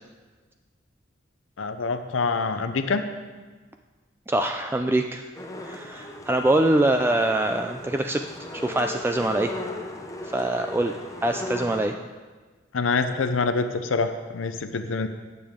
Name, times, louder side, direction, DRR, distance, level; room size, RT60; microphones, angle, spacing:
voice 1, 1.6-3.0 12.7-15.1, left 4 dB, 85° left, 8 dB, 0.6 m, -25 dB
voice 2, 4.3-5.3 5.6-8.2 8.5-9.5 10.3-11.0 11.2-11.9, right 1 dB, 10° right, 5 dB, 0.3 m, -24 dB
sound 1, 5.3-11.8, left 2 dB, 15° left, 0.8 m, -37 dB
18.0 x 6.9 x 3.6 m, 1.4 s
head